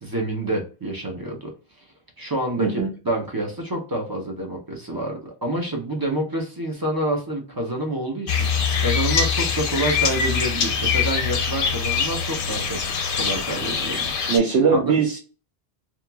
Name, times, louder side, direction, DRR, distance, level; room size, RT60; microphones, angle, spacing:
voice 1, 0.0-1.5 2.2-12.8 13.2-14.3 14.7-14.9, right 1 dB, 25° right, 1 dB, 0.5 m, -28 dB
voice 2, 2.6-2.9 14.3-15.2, right 5 dB, 75° right, 1 dB, 0.9 m, -20 dB
sound 1, 8.3-14.4, left 6 dB, 60° left, 0.7 m, -23 dB
3.0 x 2.4 x 2.2 m, 0.36 s
omnidirectional pair, 1.2 m